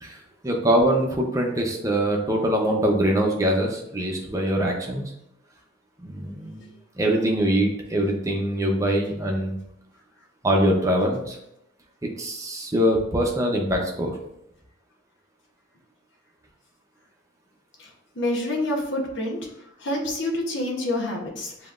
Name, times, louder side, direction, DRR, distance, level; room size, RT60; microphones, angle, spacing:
voice 1, 0.0-5.0 6.0-6.6 7.0-9.5 10.4-11.4 12.2-14.1, right 1 dB, 15° right, 0 dB, 0.7 m, -23 dB
voice 2, 18.2-19.5 19.8-21.7, left 1 dB, 70° left, 0 dB, 0.9 m, -27 dB
7.3 x 2.9 x 2.5 m, 0.79 s
head